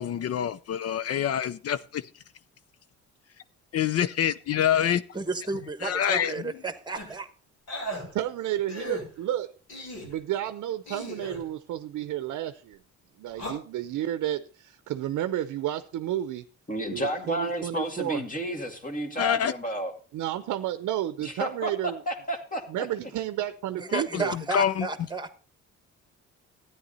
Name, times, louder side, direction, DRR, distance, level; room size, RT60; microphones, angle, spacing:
voice 1, 0.0-2.0 3.7-5.0 5.8-6.5 19.2-19.5 23.9-24.2 24.5-24.9, left 9 dB, 55° left, 0.5 m, -26 dB
voice 2, 5.1-7.3 23.8-25.3, right 3 dB, 15° right, 1.3 m, -32 dB
sound 1, 6.9-7.2 7.7-8.0 8.7-9.0 9.7-10.1 10.9-11.4 13.3-13.5, equal, 80° left, 6.2 m, -36 dB
voice 3, 8.1-9.5 10.0-12.8 13.2-16.4 16.9-18.2 20.1-22.0 22.7-24.3, right 12 dB, 75° right, 0.7 m, -31 dB
voice 4, 16.7-19.9 21.2-21.7 22.1-22.9, equal, 25° left, 2.3 m, -31 dB
13.0 x 9.5 x 4.1 m
cardioid pair, 90°, 30 cm